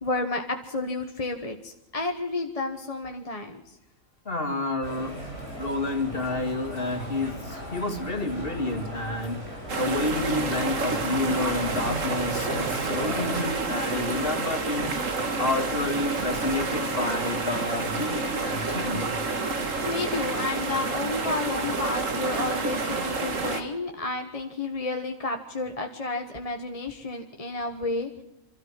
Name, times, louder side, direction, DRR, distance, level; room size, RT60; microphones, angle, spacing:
voice 1, 0.0-3.8 19.6-28.2, left 2 dB, 25° left, 4 dB, 1.4 m, -31 dB
voice 2, 4.2-5.2 5.6-9.5 9.7-19.2, left 2 dB, 45° left, 5 dB, 2.7 m, -29 dB
sound 1, 4.8-13.5, equal, 50° right, 6.1 m, -37 dB
sound 2, 9.7-23.6, right 3 dB, 70° right, 2.2 m, -29 dB
27.0 x 13.5 x 7.6 m, 0.93 s
omnidirectional pair, 1.4 m